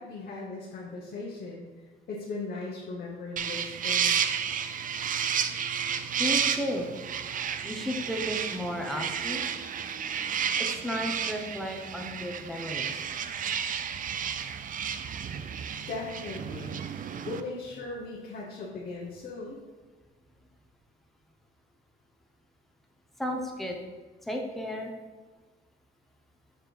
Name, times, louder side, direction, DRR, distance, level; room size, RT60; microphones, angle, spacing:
voice 1, 0.0-4.1 15.9-19.6, left 3 dB, 50° left, -4 dB, 1.2 m, -38 dB
sound 1, 3.4-17.4, right 7 dB, 45° right, 0.4 m, -32 dB
voice 2, 6.2-6.9 7.6-9.4 10.8-12.9 23.2-23.8 24.3-24.9, equal, ahead, 0 dB, 1.0 m, -33 dB
6.8 x 3.6 x 4.6 m, 1.3 s
cardioid pair, 105°, 20 cm